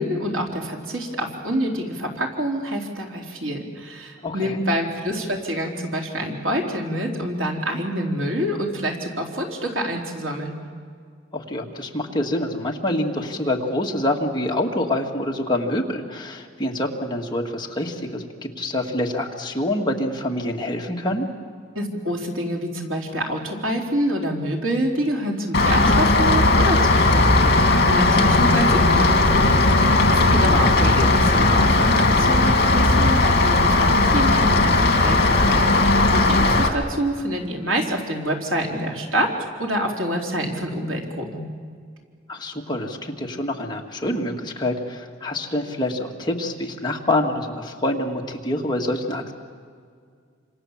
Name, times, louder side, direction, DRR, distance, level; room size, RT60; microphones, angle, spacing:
voice 1, 0.0-10.5 21.8-39.3 39.6-41.5, equal, 90° right, 0 dB, 3.8 m, -27 dB
voice 2, 4.2-4.6 11.3-21.3 30.3-30.6 42.3-49.3, left 1 dB, 25° left, 0 dB, 2.1 m, -26 dB
Rain, 25.5-36.7, left 2 dB, 55° left, 2.6 m, -17 dB
28.0 x 26.5 x 7.4 m, 2.1 s
head